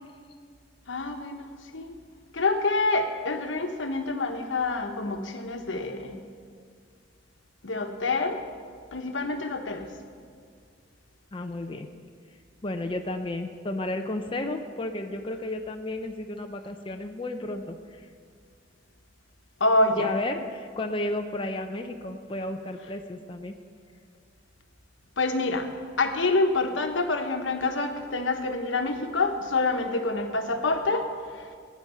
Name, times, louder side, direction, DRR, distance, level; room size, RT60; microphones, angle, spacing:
voice 1, 0.9-1.9 2.3-6.2 7.6-8.4 8.9-9.9 19.6-20.1 25.2-25.7 26.0-31.5, left 2 dB, 85° left, 5 dB, 1.1 m, -27 dB
voice 2, 11.3-11.9 12.6-18.1 20.0-23.6, left 1 dB, 30° left, 4 dB, 0.6 m, -33 dB
16.5 x 9.3 x 5.6 m, 2.1 s
head